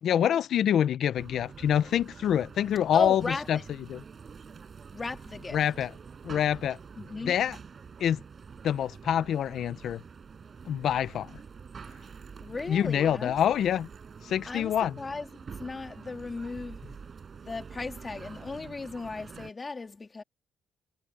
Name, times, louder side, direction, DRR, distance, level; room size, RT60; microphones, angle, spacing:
voice 1, 0.0-3.2 3.5-3.6 3.9-4.0 5.5-5.9 6.2-6.8 7.2-7.6 8.0-8.2 8.6-10.0 10.7-11.4 12.7-13.9 14.2-15.0, left 9 dB, 70° left, 1.0 m, -26 dB
sound 1, 1.1-19.5, right 6 dB, 45° right, 7.9 m, -47 dB
voice 2, 2.9-3.6 4.9-5.6 7.0-7.4 12.4-13.4 14.5-15.3 15.6-16.8 17.4-20.2, left 3 dB, 30° left, 2.7 m, -35 dB
cardioid pair, 90°, 0 cm